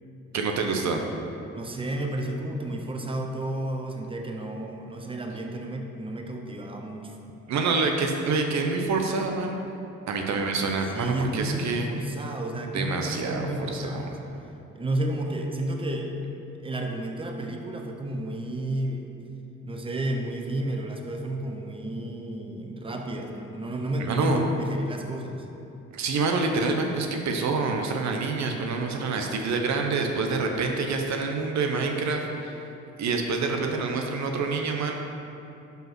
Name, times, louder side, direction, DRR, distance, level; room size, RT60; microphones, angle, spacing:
voice 1, 0.3-1.0 7.5-9.6 10.1-12.1 12.7-14.2 24.0-24.4 25.9-32.6 33.0-34.9, right 4 dB, 65° right, 3 dB, 0.9 m, -27 dB
voice 2, 1.5-7.1 10.9-14.2 14.7-16.2 16.6-19.1 19.6-25.5, right 1 dB, 20° right, 2 dB, 0.8 m, -31 dB
5.2 x 5.2 x 6.0 m, 2.8 s
cardioid pair, 90°, 30 cm